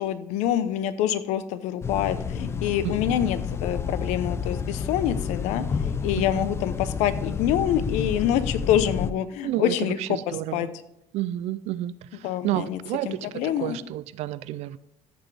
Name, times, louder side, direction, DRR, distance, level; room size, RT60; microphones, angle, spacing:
voice 1, 0.0-5.6 6.0-10.7 12.2-12.8 13.0-13.8, left 10 dB, 80° left, 0.7 m, -26 dB
sound 1, 1.8-9.1, left 6 dB, 20° left, 0.4 m, -30 dB
voice 2, 2.8-3.3 6.4-6.5 9.4-10.7 11.1-14.8, right 14 dB, 65° right, 0.4 m, -31 dB
14.0 x 6.2 x 3.3 m
cardioid pair, 135°, 12 cm